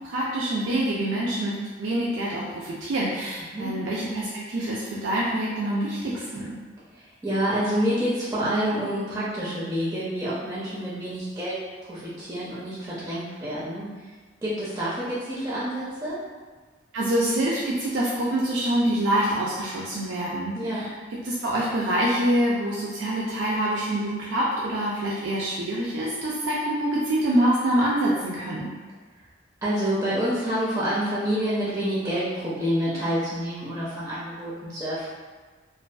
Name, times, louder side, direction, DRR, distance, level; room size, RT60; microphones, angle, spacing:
voice 1, 0.0-1.5 1.8-6.5 16.9-20.9 21.2-28.7, right 1 dB, 85° right, -5 dB, 0.4 m, -25 dB
voice 2, 6.9-11.6 11.9-13.9 14.4-16.2 20.5-20.8 29.6-35.1, equal, 15° right, -9 dB, 0.4 m, -28 dB
2.5 x 2.3 x 2.2 m, 1.4 s
head